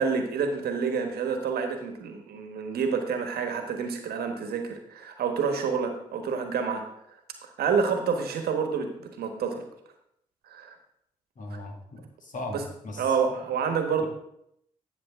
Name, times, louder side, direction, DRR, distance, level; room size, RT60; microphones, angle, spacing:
voice 1, 0.0-6.8 7.4-9.6 10.5-10.8 12.5-12.6 13.0-14.0, right 5 dB, 70° right, 6 dB, 1.3 m, -28 dB
voice 2, 11.4-13.2, left 1 dB, 50° left, 2 dB, 2.2 m, -38 dB
11.0 x 6.6 x 3.6 m, 0.75 s
hypercardioid pair, 45°, 16 cm